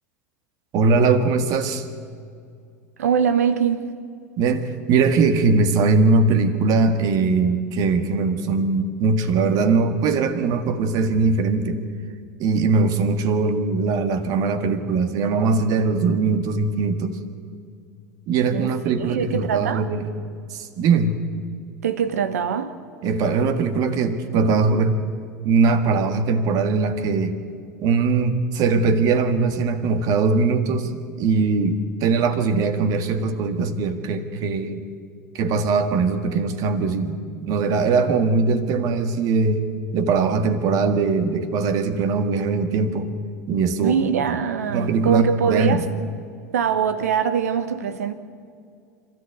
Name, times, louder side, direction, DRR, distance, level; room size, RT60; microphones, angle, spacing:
voice 1, 0.7-1.9 4.4-11.9 12.4-17.2 18.3-20.1 20.5-21.2 23.0-25.0 25.4-27.3 27.8-34.8 35.3-39.7 39.9-43.1 43.5-44.0 44.7-45.8, right 4 dB, 45° right, 1.7 m, -21 dB
voice 2, 3.0-3.9 18.5-18.7 19.0-19.9 21.8-22.8 43.8-45.9 46.5-48.1, right 7 dB, 70° right, 1.3 m, -22 dB
26.5 x 14.0 x 8.2 m
figure-of-eight pair, 80°, 9 cm